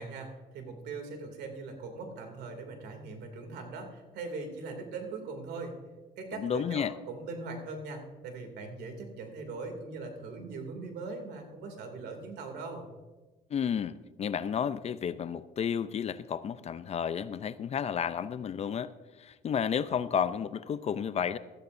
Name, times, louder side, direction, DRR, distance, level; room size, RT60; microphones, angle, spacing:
voice 1, 0.0-5.7 6.2-12.9, right 3 dB, 80° right, 2.6 m, -40 dB
voice 2, 6.4-6.9 13.5-18.9 19.2-21.4, left 8 dB, 40° left, 0.5 m, -32 dB
16.5 x 13.0 x 2.6 m
cardioid pair, 110°, 17 cm